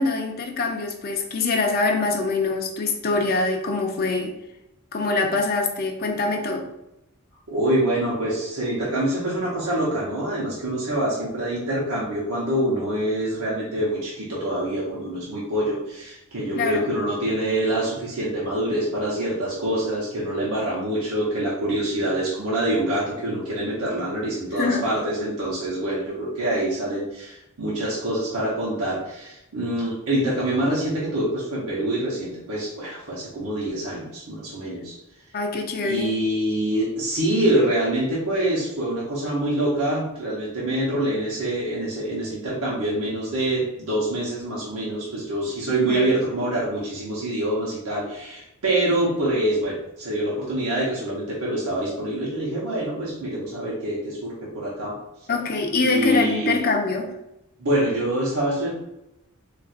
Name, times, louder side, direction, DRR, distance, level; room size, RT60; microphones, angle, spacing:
voice 1, 0.0-4.3 4.9-6.6 16.5-16.8 24.6-24.9 35.3-36.1 45.9-46.0 55.3-57.1, left 3 dB, 40° left, 2 dB, 0.5 m, -24 dB
voice 2, 7.5-35.0 35.8-55.0 55.8-56.6 57.6-58.7, right 1 dB, 85° right, -6 dB, 0.9 m, -25 dB
4.2 x 2.5 x 2.4 m, 0.87 s
head